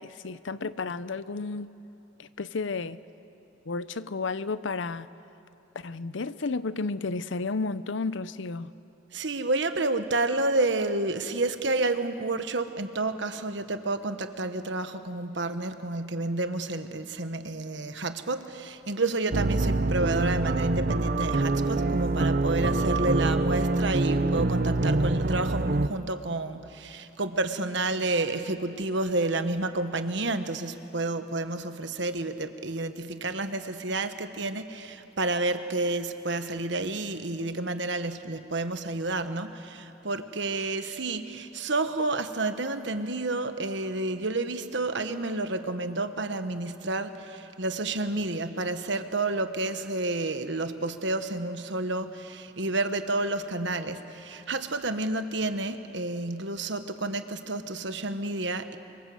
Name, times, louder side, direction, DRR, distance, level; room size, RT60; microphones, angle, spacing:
voice 1, 0.0-1.7 2.2-3.0 3.7-5.1 5.8-8.7, left 3 dB, 70° left, 0.7 m, -32 dB
voice 2, 9.1-58.8, right 2 dB, 65° right, 1.3 m, -30 dB
sound 1, 19.3-25.9, right 2 dB, 45° right, 0.7 m, -25 dB
28.0 x 25.5 x 7.9 m
head